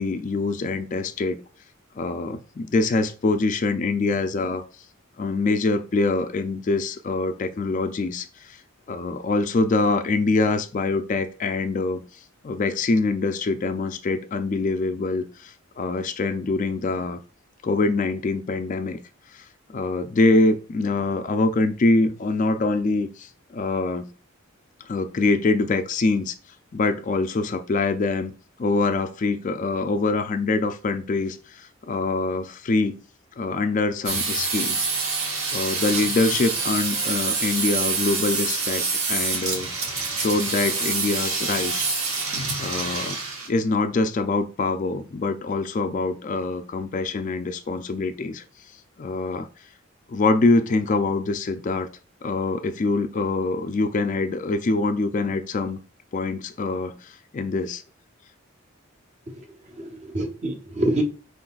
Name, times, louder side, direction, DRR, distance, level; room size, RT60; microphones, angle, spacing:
voice 1, 0.0-1.4 2.0-4.6 5.2-8.6 8.9-12.0 12.4-17.2 17.6-19.0 19.3-24.1 24.8-26.4 26.7-28.3 28.6-33.0 33.4-34.9 35.5-39.7 40.1-42.2 42.6-43.2 43.5-48.4 49.0-49.5 50.1-51.9 52.2-55.8 56.1-57.8, left 3 dB, 35° left, 9 dB, 0.3 m, -24 dB
sound 1, 34.0-43.5, right 4 dB, 85° right, 1.3 m, -26 dB
voice 2, 59.3-61.0, right 1 dB, 35° right, 5 dB, 0.8 m, -27 dB
5.0 x 3.8 x 2.3 m, 0.37 s
head